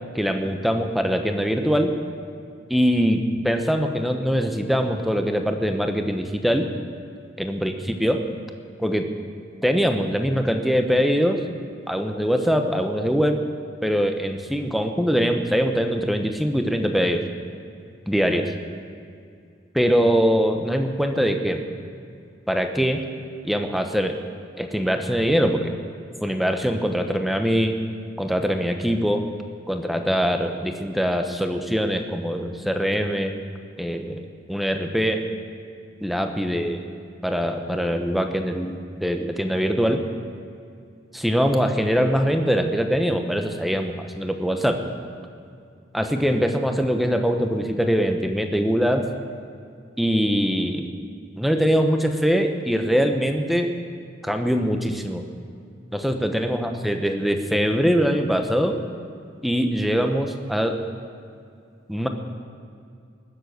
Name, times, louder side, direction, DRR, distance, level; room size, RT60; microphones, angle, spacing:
voice 1, 0.1-1.9 2.7-6.7 7.4-8.2 8.8-9.1 9.6-11.4 11.9-13.4 13.8-17.2 18.1-18.5 19.7-21.6 22.5-23.0 23.4-24.2 24.6-25.7 26.2-27.8 28.2-29.3 29.7-33.3 33.8-34.2 34.5-35.2 36.0-36.8 37.2-40.0 41.1-44.8 45.9-49.0 50.0-50.9 51.4-53.7 54.2-55.2 55.9-58.8 59.4-60.8 61.9-62.1, equal, ahead, 5 dB, 0.9 m, -22 dB
20.0 x 7.6 x 7.9 m, 2.4 s
head